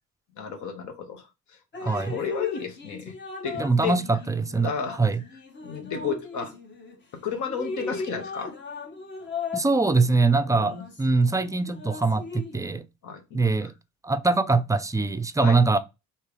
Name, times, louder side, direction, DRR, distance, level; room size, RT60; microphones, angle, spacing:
voice 1, 0.4-3.2 3.4-4.0 4.6-5.0 5.6-6.5 7.1-8.5 10.5-10.8 13.0-13.7 15.4-15.6, left 6 dB, 75° left, 0.9 m, -33 dB
Drip, 1.7-7.0 7.4-12.8, left 4 dB, 40° left, 0.9 m, -38 dB
voice 2, 3.6-4.7 5.0-5.2 9.5-12.8 13.3-13.7 14.0-15.8, right 3 dB, 10° right, 0.4 m, -23 dB
3.3 x 2.9 x 4.6 m
cardioid pair, 90°, 30 cm